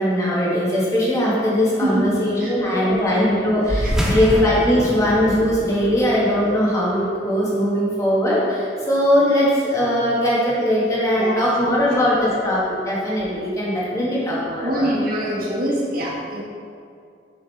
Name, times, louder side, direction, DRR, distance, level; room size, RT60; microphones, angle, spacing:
voice 1, 0.0-14.9, equal, 20° left, -7 dB, 1.6 m, -20 dB
voice 2, 1.8-2.5 2.8-3.3 4.0-4.1 11.1-11.5 13.9-14.1 14.6-16.4, right 1 dB, 55° right, -4 dB, 1.3 m, -25 dB
sound 1, 3.6-8.5, equal, 5° right, 0.8 m, -27 dB
6.8 x 5.4 x 4.3 m, 2.3 s
head